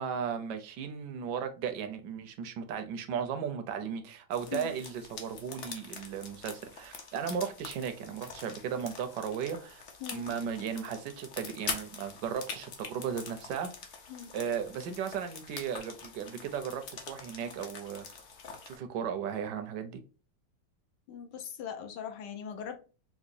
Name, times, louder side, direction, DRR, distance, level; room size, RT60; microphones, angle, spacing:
voice 1, 0.0-9.8 10.1-13.7 14.3-18.1 18.7-20.0, right 7 dB, 75° right, 1.1 m, -36 dB
sound 1, 4.3-18.8, left 5 dB, 60° left, 0.8 m, -44 dB
voice 2, 21.1-22.8, left 8 dB, 75° left, 1.2 m, -40 dB
4.8 x 2.1 x 2.5 m
omnidirectional pair, 2.0 m